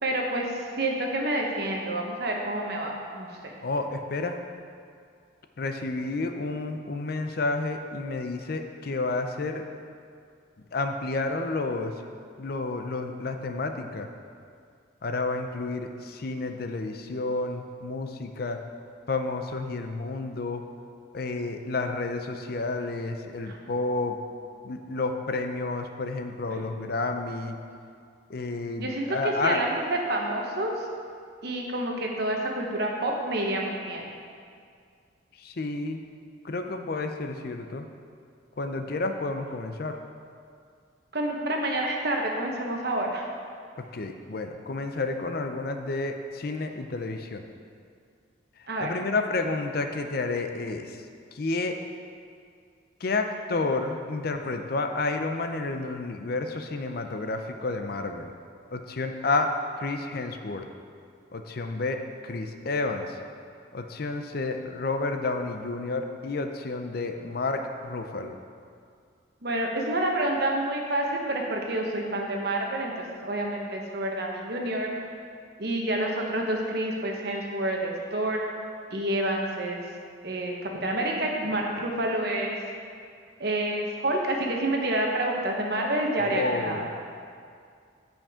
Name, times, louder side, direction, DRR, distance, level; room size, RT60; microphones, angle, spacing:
voice 1, 0.0-3.5 23.5-23.6 26.5-26.6 28.8-30.7 31.4-34.2 41.1-43.2 48.7-48.9 69.4-74.9 75.6-78.5 78.9-79.8 80.2-82.6 83.4-86.9, right 1 dB, 55° right, 0 dB, 1.1 m, -28 dB
voice 2, 3.6-4.4 5.6-9.6 10.7-11.9 12.4-14.1 15.0-18.6 19.1-20.6 21.1-24.2 24.6-27.6 28.3-29.6 35.4-36.0 36.4-37.9 38.6-40.0 43.9-47.4 48.8-51.0 51.3-51.8 53.0-58.3 58.7-59.5 59.8-60.7 61.3-63.2 63.7-68.3 86.2-86.9, left 3 dB, 50° left, 6 dB, 0.5 m, -30 dB
13.5 x 5.2 x 3.7 m, 2.3 s
head